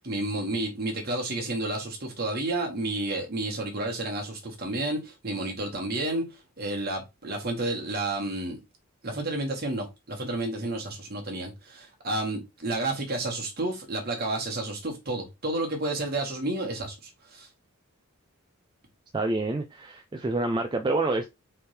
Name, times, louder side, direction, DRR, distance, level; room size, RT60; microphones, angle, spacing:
voice 1, 0.0-8.6 9.0-17.5, right 2 dB, 45° right, 1.5 m, -31 dB
voice 2, 19.1-21.3, right 2 dB, 20° right, 0.4 m, -27 dB
4.3 x 3.5 x 3.3 m
head